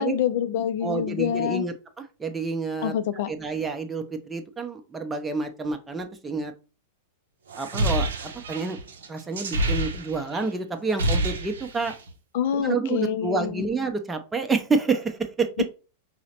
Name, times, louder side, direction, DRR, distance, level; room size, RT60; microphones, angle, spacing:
voice 1, 0.0-1.6 2.8-3.3 12.3-13.7 15.6-15.7, left 9 dB, 60° left, 0.3 m, -26 dB
voice 2, 0.8-6.5 7.6-8.1 8.5-8.8 9.1-11.9 12.5-15.5, right 4 dB, 15° right, 0.6 m, -28 dB
sound 1, 7.5-10.4 10.7-12.1, right 1 dB, 75° right, 0.6 m, -27 dB
4.7 x 2.1 x 2.8 m
hypercardioid pair, 100°, 0 cm